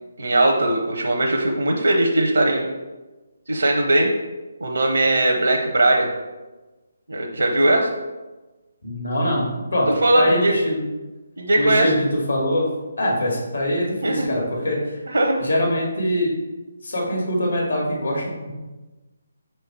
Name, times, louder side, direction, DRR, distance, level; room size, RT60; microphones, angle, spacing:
voice 1, 0.2-2.7 3.5-4.1 4.6-6.1 7.1-7.9 10.0-10.5 11.4-11.9 14.0-14.3 15.1-15.4, right 1 dB, 80° right, 1 dB, 0.8 m, -19 dB
voice 2, 8.8-9.9 10.1-10.8 11.6-12.7 13.0-15.0 15.4-16.3 16.8-18.5, equal, 80° left, -2 dB, 2.2 m, -23 dB
5.1 x 4.5 x 4.6 m, 1.2 s
figure-of-eight pair, 145°, 0 cm